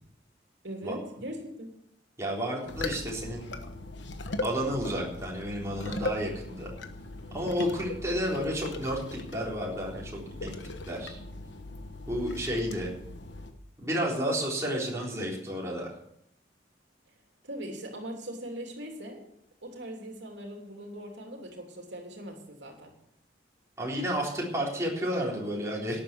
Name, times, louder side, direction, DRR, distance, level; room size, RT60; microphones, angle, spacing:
voice 1, 0.6-1.7 17.4-19.2 19.6-22.9, right 1 dB, 75° right, 1 dB, 3.1 m, -40 dB
voice 2, 2.2-3.5 4.4-6.7 7.3-10.5 10.9-11.2 12.1-12.9 13.8-15.9 23.8-26.0, equal, 15° right, -3 dB, 3.7 m, -31 dB
sound 1, 2.7-13.5, left 2 dB, 80° left, 1.3 m, -39 dB
12.0 x 8.8 x 8.2 m, 0.74 s
head